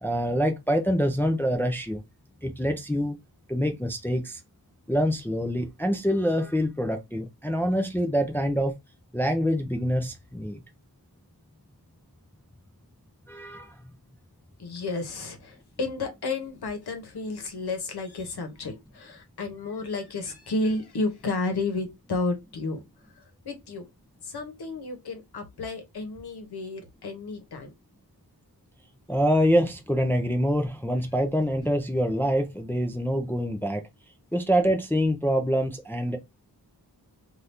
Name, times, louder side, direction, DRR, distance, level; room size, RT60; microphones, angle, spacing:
voice 1, 0.0-2.0 2.4-3.2 3.5-4.4 4.9-8.8 9.1-10.6 13.3-13.8 29.1-33.9 34.3-36.2, equal, 5° left, 0.4 m, -25 dB
voice 2, 14.6-22.8 23.1-23.8 24.2-27.7, left 3 dB, 75° left, 1.0 m, -32 dB
2.7 x 2.5 x 3.3 m
wide cardioid pair, 150°, 39 cm